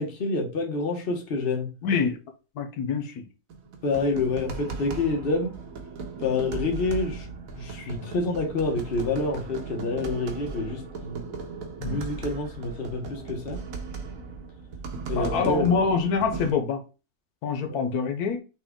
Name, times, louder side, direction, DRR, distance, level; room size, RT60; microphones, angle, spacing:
voice 1, 0.0-1.7 3.8-5.5 6.2-7.3 7.6-11.2 11.8-13.6 15.1-15.7 17.7-17.8, left 3 dB, 40° left, 1.1 m, -28 dB
voice 2, 1.8-2.2 2.6-3.3 11.8-12.0 15.2-16.8 17.4-18.4, left 5 dB, 85° left, 1.3 m, -25 dB
sound 1, 3.5-16.5, right 4 dB, 65° right, 1.2 m, -37 dB
6.1 x 2.3 x 3.5 m
omnidirectional pair, 1.6 m